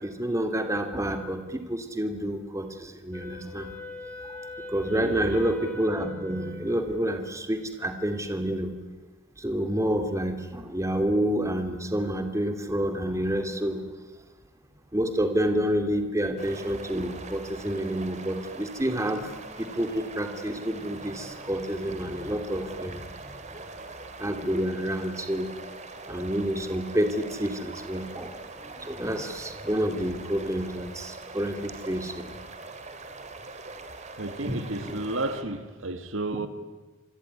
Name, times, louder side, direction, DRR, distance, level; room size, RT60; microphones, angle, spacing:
voice 1, 0.0-3.7 4.7-8.7 9.4-13.8 14.9-19.3 19.6-23.0 24.2-25.5 26.1-28.3 28.6-32.3 34.5-34.6 34.8-34.9 36.3-36.5, equal, 15° right, 2.6 m, -28 dB
Wind instrument woodwind instrument, 3.1-7.4, left 3 dB, 10° left, 5.0 m, -42 dB
voice 2, 4.8-5.4 26.1-26.2 34.2-36.5, right 2 dB, 80° right, 1.9 m, -32 dB
sound 1, 16.4-35.4, right 3 dB, 35° right, 2.9 m, -43 dB
27.0 x 21.0 x 9.9 m
head